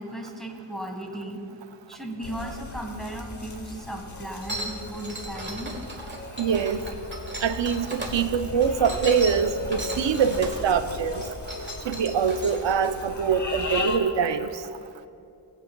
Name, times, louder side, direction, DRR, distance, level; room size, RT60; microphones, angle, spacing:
voice 1, 0.0-1.4 1.9-5.7, right 1 dB, ahead, 1 dB, 1.5 m, -36 dB
sound 1, 2.2-14.0, left 3 dB, 45° left, 0.9 m, -37 dB
sound 2, 4.4-8.1 8.6-10.6 11.1-12.9, right 1 dB, 25° right, 1.5 m, -37 dB
voice 2, 6.4-6.8 7.4-11.2 11.9-14.5, right 6 dB, 85° right, 10 dB, 0.6 m, -24 dB
18.5 x 8.1 x 2.2 m, 2.6 s
wide cardioid pair, 70°, 43 cm